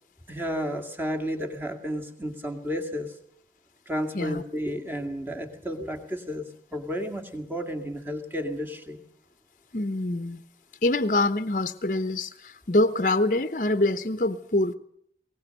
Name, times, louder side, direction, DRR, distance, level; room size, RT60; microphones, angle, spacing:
voice 1, 0.3-3.1 3.9-9.0, equal, 10° right, 4 dB, 2.2 m, -32 dB
voice 2, 9.7-10.4 10.8-14.7, left 2 dB, 45° left, 11 dB, 0.9 m, -25 dB
22.0 x 18.5 x 6.7 m, 0.67 s
head